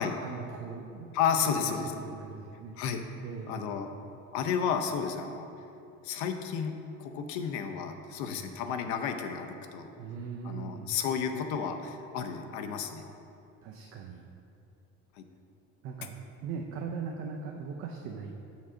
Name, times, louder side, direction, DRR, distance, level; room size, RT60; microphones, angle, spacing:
voice 1, 0.2-1.1 1.4-1.6 2.0-2.7 3.2-3.6 10.0-10.9 13.6-14.2 15.8-18.4, right 5 dB, 45° right, 1 dB, 0.5 m, -39 dB
voice 2, 1.1-1.9 2.8-3.0 3.5-3.9 4.3-5.5 6.0-9.9 10.4-13.0 15.2-15.3, left 7 dB, 70° left, 6 dB, 0.7 m, -32 dB
7.2 x 6.1 x 3.7 m, 2.7 s
cardioid pair, 160°, 30 cm